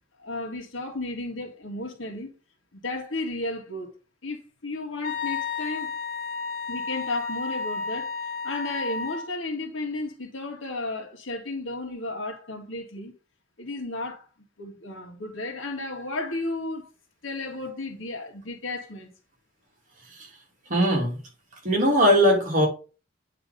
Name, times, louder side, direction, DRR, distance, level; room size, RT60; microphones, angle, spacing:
voice 1, 0.2-2.3 2.7-3.9 4.2-5.9 6.7-8.1 8.4-13.1 13.6-14.3 14.6-16.9 17.2-19.1, left 2 dB, 70° left, 1.8 m, -33 dB
Wind instrument woodwind instrument, 5.0-9.3, left 4 dB, 45° left, 0.9 m, -32 dB
voice 2, 20.7-21.2 21.6-22.7, equal, 40° right, 2.8 m, -19 dB
9.0 x 3.4 x 5.1 m
head